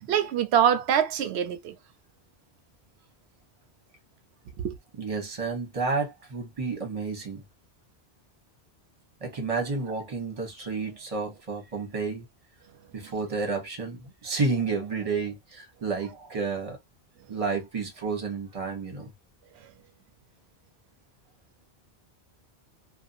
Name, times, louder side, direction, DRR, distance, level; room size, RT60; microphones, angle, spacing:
voice 1, 0.0-1.8 4.6-4.8 13.0-13.1, right 9 dB, 85° right, 0.9 m, -24 dB
voice 2, 5.0-7.4 9.2-12.3 12.9-16.8 17.3-19.1, right 4 dB, 35° right, 1.0 m, -31 dB
2.6 x 2.3 x 2.4 m
omnidirectional pair, 1.1 m